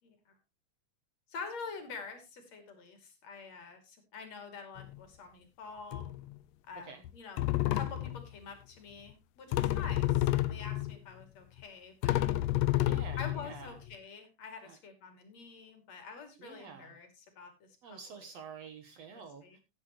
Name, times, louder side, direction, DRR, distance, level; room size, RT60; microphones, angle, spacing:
voice 1, 0.0-0.4 1.3-6.0 6.7-7.4 7.7-12.3 13.2-18.2 19.1-19.6, left 5 dB, 55° left, 6 dB, 3.7 m, -47 dB
sound 1, 4.8-5.0 5.9-6.3 7.0-7.1 7.4-8.2 9.5-11.0 11.6-11.7 12.0-13.9, left 15 dB, 75° left, 1.5 m, -30 dB
voice 2, 12.8-13.8 14.6-14.8 16.4-17.0 17.8-19.6, right 6 dB, 60° right, 7 dB, 2.1 m, -48 dB
15.5 x 9.9 x 3.0 m, 0.26 s
omnidirectional pair, 3.8 m